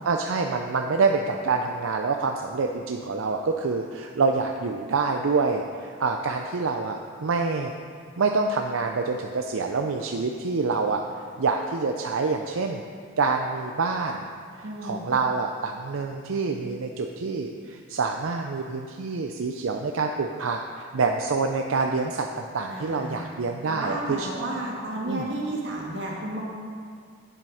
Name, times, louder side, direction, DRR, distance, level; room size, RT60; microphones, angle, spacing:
voice 1, 0.0-7.7 8.2-11.0 11.4-12.8 13.2-14.2 14.6-24.3 25.1-25.2, right 4 dB, 85° right, 3 dB, 0.5 m, -26 dB
voice 2, 14.6-15.0 22.7-23.2 23.7-26.4, right 1 dB, 60° right, -3 dB, 2.0 m, -32 dB
10.0 x 7.6 x 4.9 m, 2.1 s
head